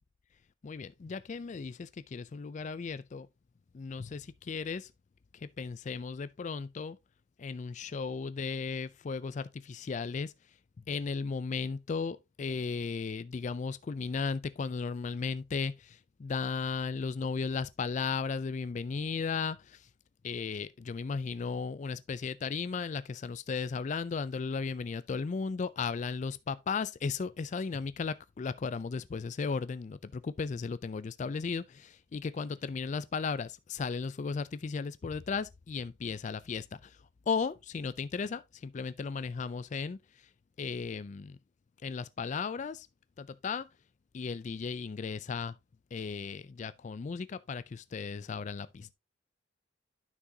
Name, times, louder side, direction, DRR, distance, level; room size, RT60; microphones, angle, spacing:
voice 1, 0.6-3.3 3.7-4.9 5.3-7.0 7.4-10.3 10.9-19.9 20.2-37.0 37.3-40.3 40.6-41.4 41.8-42.9 43.2-43.7 44.1-45.6 45.9-48.9, left 5 dB, 40° left, 0.3 m, -35 dB
9.7 x 6.0 x 2.7 m
head